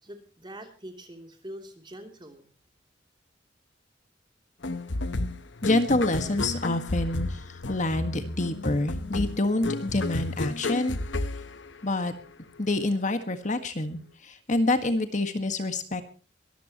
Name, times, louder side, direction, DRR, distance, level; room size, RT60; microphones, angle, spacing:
voice 1, 0.0-2.5, right 1 dB, 25° right, 5 dB, 3.1 m, -44 dB
sound 1, 4.6-12.2, left 2 dB, 90° left, 1.1 m, -32 dB
voice 2, 5.6-11.0 11.8-12.1 12.6-16.0, left 2 dB, 40° left, 8 dB, 1.7 m, -27 dB
23.5 x 14.5 x 3.0 m, 0.35 s
head